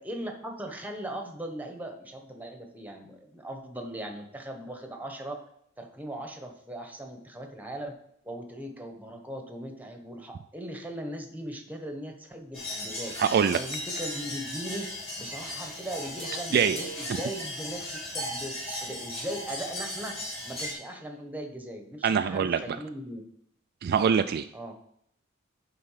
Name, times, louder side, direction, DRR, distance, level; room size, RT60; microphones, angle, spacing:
voice 1, 0.0-5.4 5.8-7.9 8.2-13.1 13.5-20.2 20.4-23.2 24.5-24.7, right 1 dB, 10° right, 4 dB, 1.2 m, -39 dB
sound 1, 12.5-20.7, left 1 dB, 30° left, 3.1 m, -36 dB
voice 2, 13.2-13.6 16.5-16.8 22.0-22.8 23.8-24.5, right 7 dB, 50° right, 9 dB, 0.3 m, -24 dB
9.6 x 3.8 x 5.7 m, 0.69 s
head